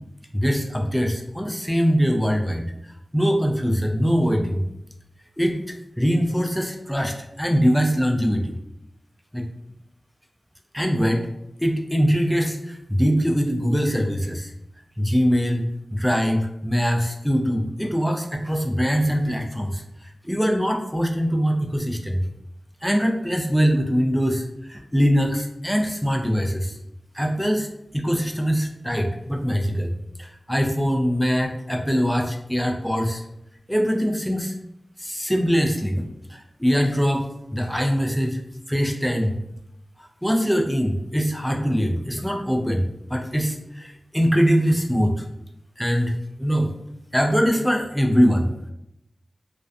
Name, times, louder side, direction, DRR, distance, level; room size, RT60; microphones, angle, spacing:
voice 1, 0.3-2.7 3.1-4.7 5.4-5.6 6.0-8.6 9.3-9.5 10.7-11.3 11.6-14.5 15.0-22.2 22.8-26.8 27.1-27.7 27.9-29.9 30.2-33.2 33.7-34.5 35.0-37.3 37.5-38.4 38.7-39.4 40.0-45.2 45.8-46.1 46.4-46.7 47.1-48.5, equal, 5° left, 2 dB, 0.3 m, -22 dB
2.3 x 2.2 x 2.5 m, 0.81 s
wide cardioid pair, 85°, 0 cm